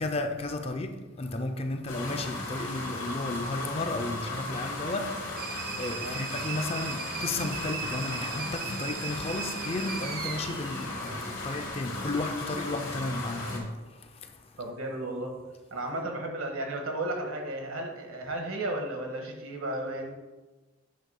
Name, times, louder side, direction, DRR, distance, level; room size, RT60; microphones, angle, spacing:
voice 1, 0.0-14.6, left 2 dB, 30° left, 0.4 m, -34 dB
sound 1, 1.9-13.6, left 2 dB, 80° left, 2.1 m, -37 dB
sound 2, 5.4-11.7, right 6 dB, 45° right, 0.5 m, -38 dB
voice 2, 14.6-15.3 15.7-20.1, right 1 dB, 75° right, 1.3 m, -34 dB
8.9 x 3.1 x 5.5 m
head